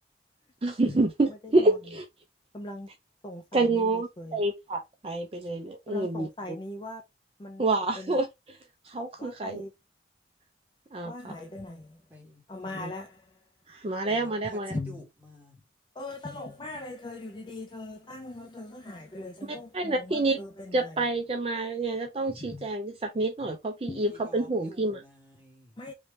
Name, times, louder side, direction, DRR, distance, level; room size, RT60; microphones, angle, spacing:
voice 1, 0.6-2.0 3.5-6.3 7.6-8.6 8.8-9.6 10.9-11.3 12.8-12.9 13.7-14.7 19.7-20.4 20.7-25.0, right 2 dB, 30° right, 0.4 m, -28 dB
voice 2, 1.3-1.8 2.5-2.9 3.2-4.4 5.9-7.0 7.4-7.6 8.0-8.2 9.2-9.7 11.0-12.0 12.5-13.3 14.7-15.0 16.0-21.0 22.3-22.7 23.4-23.5 23.9-24.1 25.8-25.9, left 2 dB, 25° left, 0.4 m, -40 dB
voice 3, 12.1-12.9 14.1-15.6 22.4-22.5 24.0-25.8, equal, 10° right, 1.3 m, -50 dB
3.0 x 2.7 x 3.3 m
head